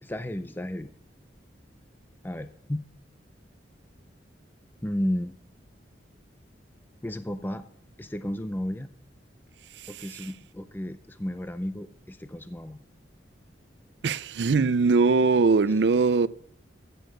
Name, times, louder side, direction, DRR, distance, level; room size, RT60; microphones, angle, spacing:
voice 1, 0.0-0.9 2.2-2.8 4.8-5.4 7.0-7.6 8.0-8.9 9.9-12.8, left 1 dB, 10° left, 0.4 m, -33 dB
voice 2, 14.0-16.3, right 4 dB, 65° right, 0.5 m, -21 dB
15.0 x 7.0 x 6.4 m
head